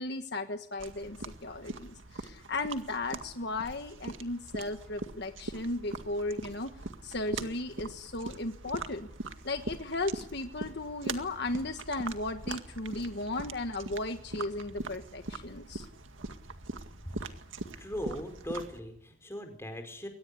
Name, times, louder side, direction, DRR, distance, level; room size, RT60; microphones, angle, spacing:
voice 1, 0.0-6.7 7.0-9.1 9.4-15.9, left 2 dB, 60° left, 7 dB, 1.5 m, -35 dB
sound 1, 0.8-18.8, right 2 dB, 80° right, 2.0 m, -42 dB
voice 2, 17.0-17.4 17.7-20.1, equal, 15° left, 6 dB, 4.9 m, -39 dB
23.0 x 19.0 x 10.0 m, 0.68 s
head